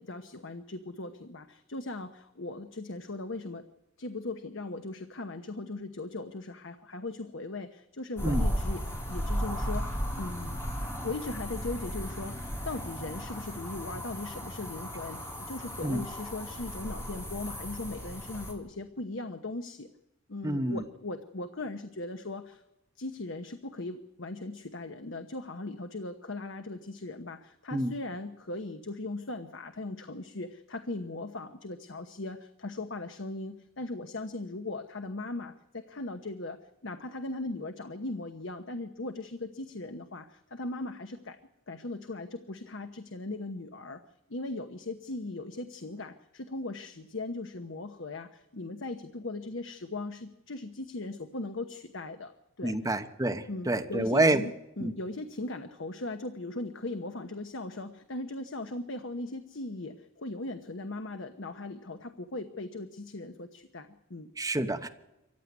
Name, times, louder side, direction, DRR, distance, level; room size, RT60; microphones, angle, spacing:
voice 1, 0.0-3.6 4.0-10.6 11.0-19.9 20.3-22.6 23.0-41.4 41.7-44.0 44.3-52.9 53.5-64.3, left 2 dB, 65° left, 8 dB, 1.0 m, -39 dB
sound 1, 8.2-18.5, equal, 15° left, 3.6 m, -35 dB
voice 2, 20.4-20.8 27.7-27.9 52.6-54.4 54.8-54.9 64.4-64.9, right 2 dB, 15° right, 7 dB, 1.1 m, -27 dB
25.0 x 15.0 x 9.5 m, 0.95 s
head